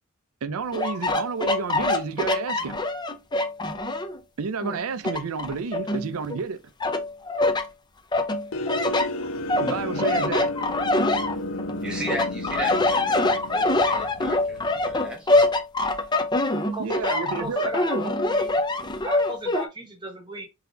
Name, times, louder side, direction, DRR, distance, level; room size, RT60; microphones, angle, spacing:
voice 1, 0.4-2.8 4.4-6.6 9.6-10.5 16.8-18.0, right 5 dB, 85° right, 0.5 m, -30 dB
sound 1, 0.7-4.2 4.6-6.4 6.8-7.7 8.1-11.7 12.1-19.7, left 2 dB, 20° left, 0.5 m, -24 dB
sound 2, 8.5-15.1, left 2 dB, 70° left, 0.6 m, -33 dB
voice 2, 11.8-15.3, right 1 dB, 5° right, 1.3 m, -35 dB
voice 3, 16.7-18.6 19.0-20.5, right 1 dB, 20° right, 1.1 m, -35 dB
3.9 x 2.8 x 3.8 m
head